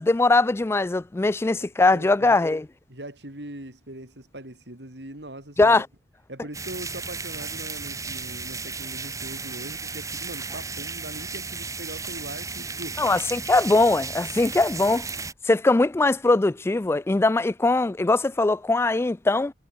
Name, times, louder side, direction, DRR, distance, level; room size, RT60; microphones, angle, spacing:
voice 1, 0.0-2.6 5.6-5.9 13.0-15.0 15.5-19.5, left 2 dB, 15° left, 0.3 m, -21 dB
voice 2, 1.5-2.4 2.9-5.8 6.3-13.1, right 1 dB, 70° right, 4.9 m, -41 dB
sound 1, 6.5-15.3, right 4 dB, 20° right, 1.7 m, -34 dB
head